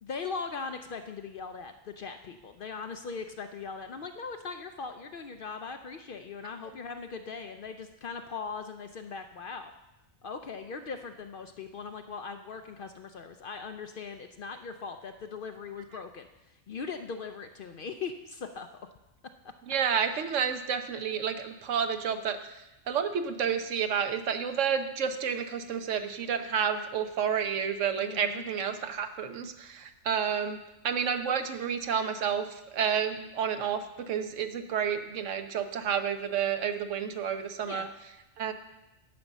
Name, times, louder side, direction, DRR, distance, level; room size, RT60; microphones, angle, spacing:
voice 1, 0.0-9.7 10.2-18.7 28.0-28.4 37.6-37.9, left 5 dB, 60° left, 7 dB, 0.6 m, -40 dB
voice 2, 19.7-22.6 22.9-37.9 38.4-38.5, right 7 dB, 75° right, 8 dB, 1.1 m, -30 dB
10.5 x 5.3 x 7.1 m, 0.96 s
omnidirectional pair, 1.3 m